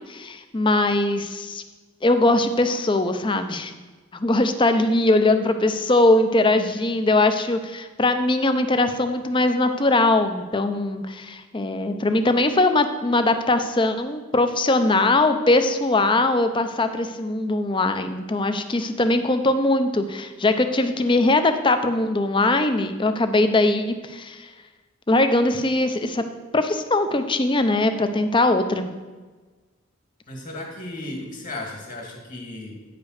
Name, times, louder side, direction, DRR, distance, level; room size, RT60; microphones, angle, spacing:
voice 1, 0.0-1.6 2.0-3.7 4.1-24.4 25.1-26.2 26.5-28.9, left 2 dB, 25° left, 9 dB, 0.6 m, -21 dB
voice 2, 30.3-32.8, left 2 dB, 40° left, 1 dB, 2.0 m, -35 dB
9.3 x 5.1 x 6.4 m, 1.3 s
head